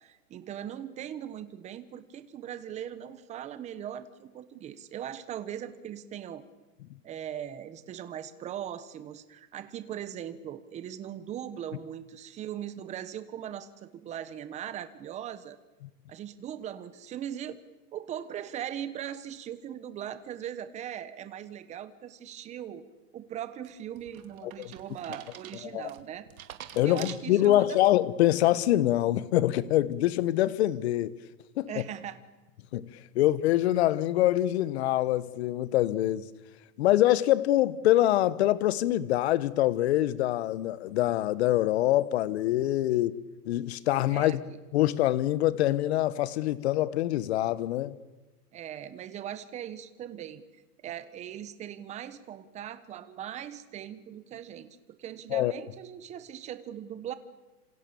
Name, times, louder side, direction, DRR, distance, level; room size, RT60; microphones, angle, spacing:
voice 1, 0.0-6.4 7.0-15.6 16.1-17.6 17.9-22.8 23.1-26.3 26.8-27.8 31.7-32.2 33.2-33.3 42.9-43.1 44.1-44.4 48.5-50.4 50.8-57.1, right 10 dB, 15° right, 1.2 m, -40 dB
sound 1, 23.6-27.9 28.3-28.7, right 11 dB, 60° right, 2.8 m, -47 dB
voice 2, 26.7-31.1 31.6-31.7 32.7-32.9 33.1-36.3 36.8-43.1 43.4-44.4 44.7-48.0 55.3-55.5, left 14 dB, 45° left, 1.3 m, -25 dB
27.5 x 27.0 x 7.1 m
hypercardioid pair, 150°, 47 cm